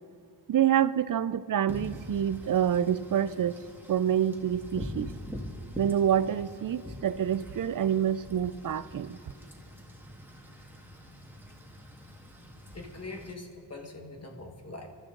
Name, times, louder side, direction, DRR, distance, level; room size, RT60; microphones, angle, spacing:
voice 1, 0.5-3.6 3.9-5.1 5.8-9.2, right 9 dB, 50° right, 16 dB, 0.5 m, -27 dB
Wind / Rain, 1.7-13.3, equal, 5° right, 1.6 m, -44 dB
voice 2, 12.7-14.9, left 2 dB, 35° left, 2 dB, 1.7 m, -43 dB
28.5 x 12.5 x 3.8 m, 2.4 s
wide cardioid pair, 125°, 43 cm